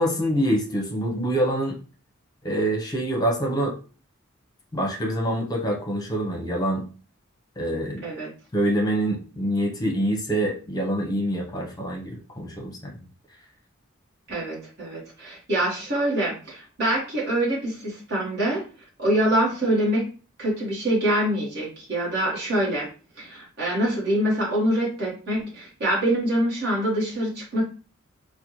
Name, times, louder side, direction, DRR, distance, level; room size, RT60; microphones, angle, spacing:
voice 1, 0.0-1.8 2.4-3.7 4.7-6.8 7.6-8.0 8.5-12.8, right 1 dB, 20° left, -1 dB, 0.8 m, -25 dB
voice 2, 14.3-18.6 19.0-20.0 20.4-22.9 23.2-27.6, right 1 dB, 50° right, -5 dB, 1.1 m, -25 dB
4.1 x 2.2 x 3.0 m, 0.37 s
head